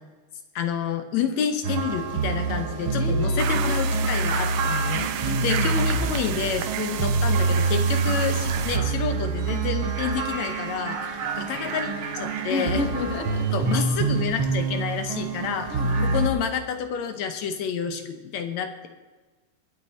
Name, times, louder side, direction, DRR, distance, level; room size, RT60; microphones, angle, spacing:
voice 1, 0.6-12.8 13.5-15.7 16.0-18.9, left 7 dB, 70° left, 8 dB, 1.9 m, -29 dB
sound 1, 1.6-16.3, right 4 dB, 55° right, 1.6 m, -26 dB
voice 2, 3.0-3.8 5.2-5.7 12.5-13.7 15.7-16.2, left 3 dB, 45° left, 4 dB, 0.8 m, -31 dB
sound 2, 3.4-8.8, right 11 dB, 75° right, 1.9 m, -32 dB
23.0 x 8.8 x 4.3 m, 1.3 s
omnidirectional pair, 3.7 m